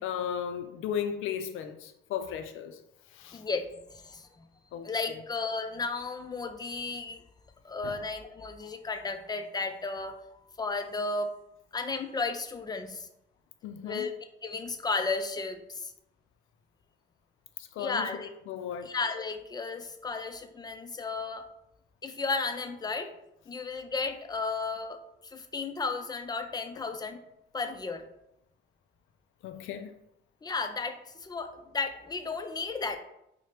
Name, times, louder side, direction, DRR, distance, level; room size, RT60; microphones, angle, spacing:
voice 1, 0.0-2.8 3.1-3.4 4.7-5.2 7.8-8.0 13.6-14.1 17.6-18.1 18.5-18.9 29.4-29.9, left 8 dB, 85° left, 0.4 m, -35 dB
voice 2, 3.3-4.5 4.8-7.2 7.6-10.2 10.6-11.3 11.7-13.1 13.8-14.1 14.4-15.9 17.8-18.3 18.8-21.5 22.0-23.1 23.5-27.2 27.5-28.0 30.4-33.0, left 4 dB, 20° left, 0.4 m, -34 dB
4.7 x 2.1 x 2.9 m
cardioid pair, 90°, 20 cm